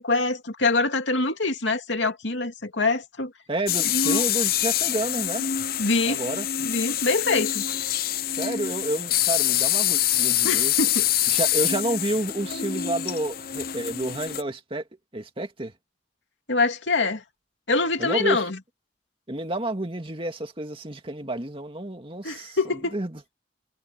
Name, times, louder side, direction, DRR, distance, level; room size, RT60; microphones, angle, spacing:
voice 1, 0.0-3.3 3.9-4.2 5.8-6.2 6.6-7.6 10.4-11.1 16.5-17.2 17.7-18.6 22.2-22.9, left 3 dB, 80° left, 2.5 m, -24 dB
voice 2, 3.5-5.5 6.1-6.5 8.3-10.7 11.3-14.8 15.1-15.7 18.0-18.4 19.3-22.6 22.9-23.3, right 1 dB, 30° right, 2.3 m, -30 dB
sound 1, 3.7-14.4, left 12 dB, 55° left, 0.8 m, -25 dB
head